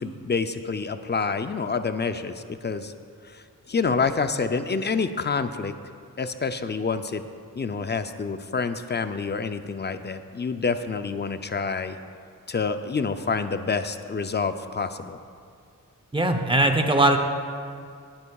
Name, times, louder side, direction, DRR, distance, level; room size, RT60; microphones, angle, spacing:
voice 1, 0.0-2.9 3.2-5.7 6.2-7.2 7.6-12.0 12.5-15.2, left 4 dB, 30° left, 9 dB, 0.4 m, -27 dB
voice 2, 16.1-17.2, right 1 dB, 15° right, 6 dB, 0.7 m, -20 dB
19.5 x 9.7 x 2.3 m, 2.3 s
wide cardioid pair, 150°, 35 cm